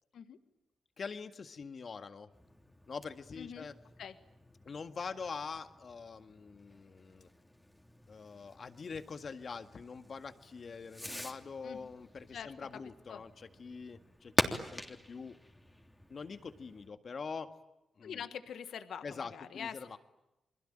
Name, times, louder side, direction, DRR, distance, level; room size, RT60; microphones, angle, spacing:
voice 1, 1.0-2.3 2.9-3.7 4.7-7.3 8.1-15.4 16.1-17.5 18.0-18.2 19.0-20.0, left 5 dB, 55° left, 9 dB, 1.8 m, -44 dB
Fireworks, 2.3-16.9, left 1 dB, 10° left, 3.2 m, -43 dB
voice 2, 3.4-3.7 4.0-4.1 11.6-11.9 12.3-12.5 13.1-13.2 18.0-20.0, left 8 dB, 80° left, 10 dB, 1.5 m, -44 dB
29.0 x 22.0 x 9.0 m, 0.93 s
supercardioid pair, 50°, 0 cm